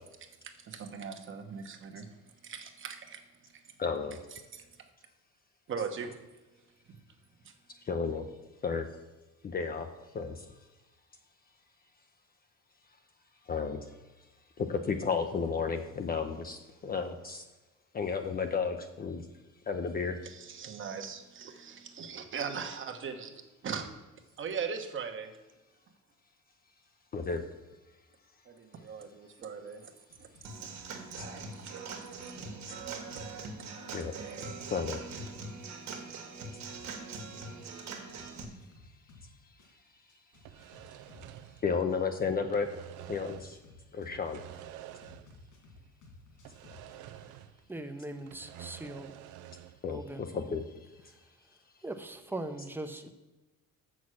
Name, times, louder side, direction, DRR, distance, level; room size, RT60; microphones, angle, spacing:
voice 1, 0.6-2.1 2.4-3.2 4.5-4.6 5.7-6.2 7.4-7.5 20.2-23.9 24.4-25.3 28.5-29.9 30.2-30.3 30.6-30.7 31.0-31.1 31.6-31.8 32.7-33.2 33.6-33.7 34.4-34.6, right 6 dB, 40° right, 5 dB, 1.1 m, -40 dB
voice 2, 3.8-4.2 7.8-8.3 8.6-8.9 9.4-9.9 10.1-10.5 13.5-14.0 14.6-17.4 17.9-19.2 19.7-20.2 27.1-27.4 31.2-31.3 32.7-32.8 33.9-35.4 41.6-42.7 43.1-43.6 43.9-44.4 49.8-50.7, left 5 dB, 30° left, 6 dB, 0.6 m, -33 dB
sound 1, 30.1-31.3 31.6-35.3 35.6-39.3 39.6-41.4 43.0-44.6 45.0-47.0, left 3 dB, 75° left, 3.4 m, -56 dB
Human voice / Acoustic guitar / Drum, 30.4-38.4, right 4 dB, 65° right, 1.6 m, -42 dB
sound 2, 40.3-42.1 42.4-43.6 44.1-45.5 45.8-45.9 46.4-47.7 48.0-49.8, right 11 dB, 85° right, 0.6 m, -49 dB
voice 3, 47.7-49.1 49.9-50.3 51.1-51.2 51.8-53.1, right 2 dB, 5° right, 8 dB, 0.7 m, -40 dB
7.1 x 6.2 x 6.3 m, 1.1 s
cardioid pair, 135°, 30 cm